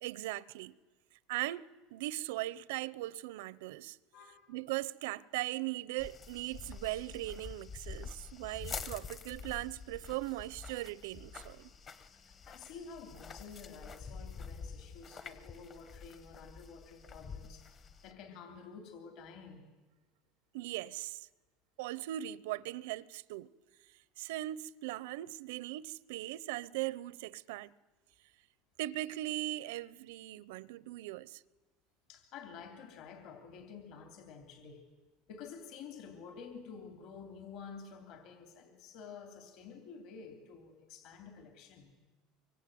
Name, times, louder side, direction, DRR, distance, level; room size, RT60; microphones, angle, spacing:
voice 1, 0.0-0.8 1.3-4.0 4.5-11.7 20.5-21.3 21.8-23.5 24.2-27.7 28.8-31.4, right 16 dB, 85° right, 0.8 m, -39 dB
voice 2, 4.1-4.5 8.5-8.6 12.1-19.6 32.1-34.8 35.3-41.9, left 5 dB, 45° left, 2.9 m, -50 dB
sound 1, 6.0-18.1, left 5 dB, 25° left, 1.2 m, -47 dB
25.0 x 24.0 x 9.4 m
cardioid pair, 170°, 0 cm